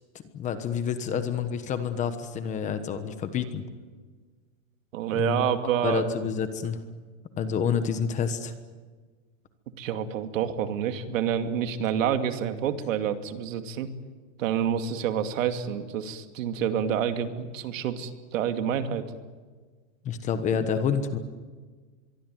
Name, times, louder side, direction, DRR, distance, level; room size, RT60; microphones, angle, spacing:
voice 1, 0.3-3.6 5.1-5.4 5.8-6.8 7.4-8.5 20.0-21.2, left 7 dB, 20° left, 10 dB, 1.2 m, -28 dB
voice 2, 4.9-6.0 9.8-13.9 14.4-19.1, right 8 dB, 75° right, 7 dB, 2.5 m, -28 dB
24.5 x 23.5 x 9.3 m, 1.4 s
supercardioid pair, 175°, 40 cm